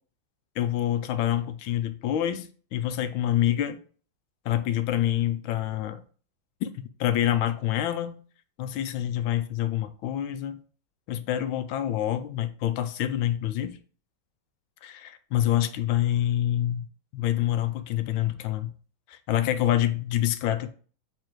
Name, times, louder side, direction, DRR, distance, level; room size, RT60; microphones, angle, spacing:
voice 1, 0.6-3.8 4.4-6.0 6.6-8.2 8.6-10.6 11.1-13.8 14.8-16.9 17.1-18.7 19.1-20.7, left 12 dB, 80° left, 1.3 m, -27 dB
7.5 x 2.8 x 4.5 m
omnidirectional pair, 2.1 m